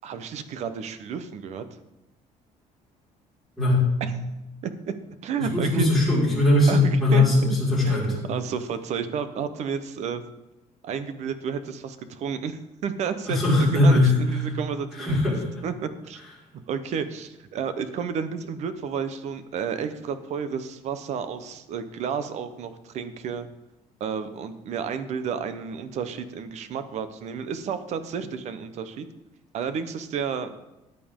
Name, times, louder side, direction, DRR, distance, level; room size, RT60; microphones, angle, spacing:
voice 1, 0.0-1.6 4.0-4.1 4.6-4.9 5.2-5.9 6.7-7.6 7.8-10.2 10.8-15.2 15.6-16.2 16.5-23.5 24.0-29.1 29.5-30.5, right 6 dB, 55° right, 11 dB, 0.9 m, -31 dB
voice 2, 3.6-3.9 5.4-8.1 13.3-14.2 15.0-15.5, left 2 dB, ahead, -8 dB, 4.9 m, -20 dB
14.0 x 9.4 x 3.7 m, 0.98 s
cardioid pair, 160°, 14 cm